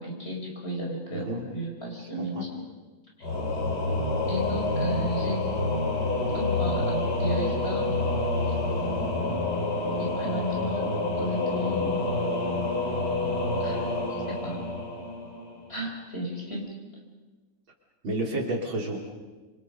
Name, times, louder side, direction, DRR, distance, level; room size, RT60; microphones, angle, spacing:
voice 1, 0.0-2.7 3.2-3.3 4.3-5.5 6.3-7.9 8.4-8.5 10.0-12.0 13.6-15.1 15.7-16.8, equal, 30° left, 0 dB, 5.5 m, -34 dB
voice 2, 1.1-1.4 2.3-2.4 18.0-19.0, right 1 dB, 70° right, 0 dB, 4.1 m, -30 dB
Singing / Musical instrument, 3.2-15.8, left 2 dB, 50° left, 4.5 m, -28 dB
27.0 x 26.0 x 5.4 m, 1.3 s
omnidirectional pair, 2.3 m